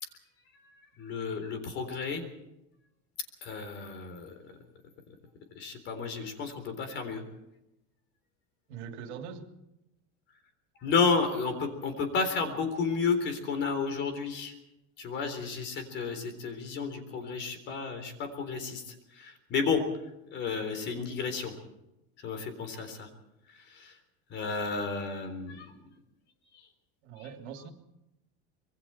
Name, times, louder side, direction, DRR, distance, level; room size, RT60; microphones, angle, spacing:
voice 1, 1.0-2.3 3.4-4.3 5.5-7.2 10.8-14.5 15.0-19.8 20.3-21.5 22.2-23.1 23.5-24.0 24.3-25.7 26.5-26.7 27.2-27.3, left 5 dB, 35° left, 8 dB, 3.8 m, -32 dB
voice 2, 8.7-9.5 27.0-27.7, right 7 dB, 80° right, 5 dB, 3.0 m, -42 dB
26.0 x 22.5 x 4.4 m, 0.90 s
cardioid pair, 170°, 33 cm